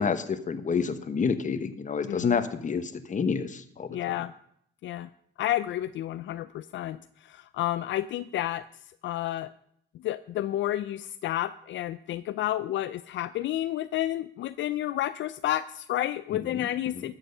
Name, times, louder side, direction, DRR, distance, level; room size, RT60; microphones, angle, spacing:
voice 1, 0.0-4.1 16.4-16.7 16.9-17.1, left 5 dB, 40° left, 10 dB, 1.2 m, -29 dB
voice 2, 2.1-2.4 3.9-4.3 4.8-5.1 5.4-7.0 7.3-8.6 9.0-9.5 10.0-17.1, left 13 dB, 70° left, 13 dB, 0.4 m, -30 dB
13.0 x 7.8 x 5.6 m, 0.70 s
cardioid pair, 90°, 20 cm